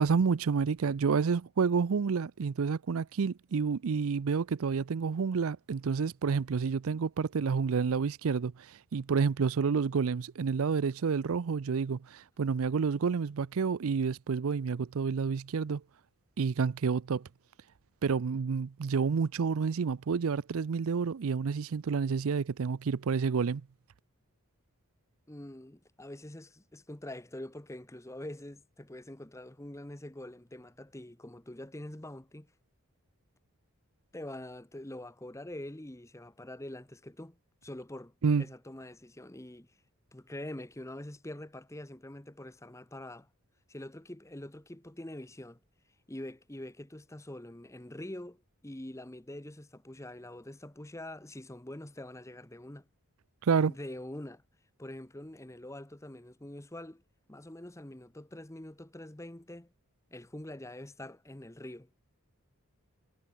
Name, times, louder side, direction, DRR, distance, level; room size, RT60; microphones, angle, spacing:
voice 1, 0.0-8.5 8.9-15.8 16.4-17.2 18.0-23.6 38.2-38.4 53.4-53.7, right 5 dB, 70° right, 0.5 m, -29 dB
voice 2, 25.3-32.5 34.1-37.4 37.6-38.1 38.4-39.7 40.1-43.3 43.7-45.6 46.1-52.9 53.7-54.4 54.8-57.0 57.3-59.7 60.1-61.9, left 1 dB, 15° left, 1.0 m, -45 dB
head